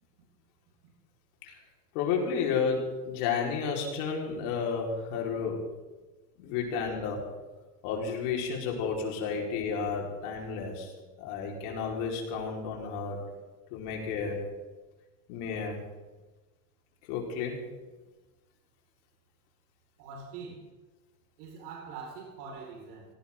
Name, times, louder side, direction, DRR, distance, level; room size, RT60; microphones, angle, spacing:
voice 1, 1.9-5.6 6.4-7.2 7.8-10.9 11.2-13.2 13.7-14.4 15.3-15.8 17.1-17.6, left 5 dB, 65° left, 0 dB, 4.6 m, -32 dB
voice 2, 20.0-20.6 21.4-23.1, right 5 dB, 70° right, -1 dB, 5.2 m, -43 dB
18.0 x 17.0 x 3.8 m, 1.2 s
supercardioid pair, 125°, 48 cm